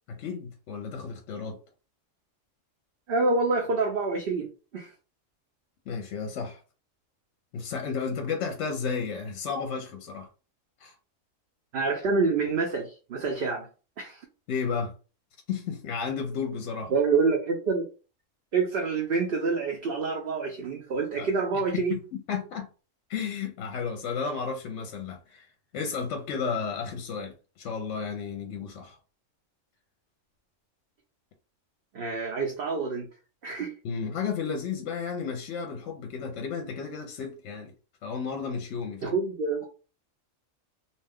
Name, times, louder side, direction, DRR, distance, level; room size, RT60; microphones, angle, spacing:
voice 1, 0.1-1.6 5.9-6.6 7.5-10.3 10.8-10.9 14.5-14.9 15.5-16.9 21.2-21.3 21.7-22.7 23.1-25.5 25.7-29.0 33.8-37.7 38.0-39.2, left 5 dB, 70° left, 0.9 m, -33 dB
voice 2, 3.1-4.9 11.7-13.7 14.0-14.2 16.9-17.9 18.5-21.9 31.9-33.1 33.4-33.7 39.0-39.7, right 4 dB, 55° right, 0.7 m, -27 dB
2.6 x 2.2 x 3.4 m
omnidirectional pair, 1.3 m